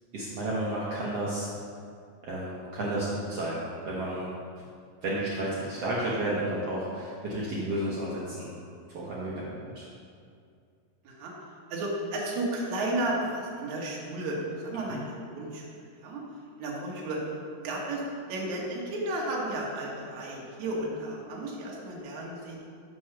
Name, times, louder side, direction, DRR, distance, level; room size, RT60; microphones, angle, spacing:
voice 1, 0.1-1.5 2.2-4.3 5.0-8.5 8.9-9.9 14.9-15.0, right 1 dB, 80° right, -6 dB, 1.4 m, -32 dB
voice 2, 11.7-15.6 16.0-16.2 16.6-17.2 17.6-18.0 18.3-22.6, right 1 dB, 60° right, -3 dB, 2.3 m, -33 dB
6.3 x 6.1 x 5.9 m, 2.3 s
omnidirectional pair, 4.3 m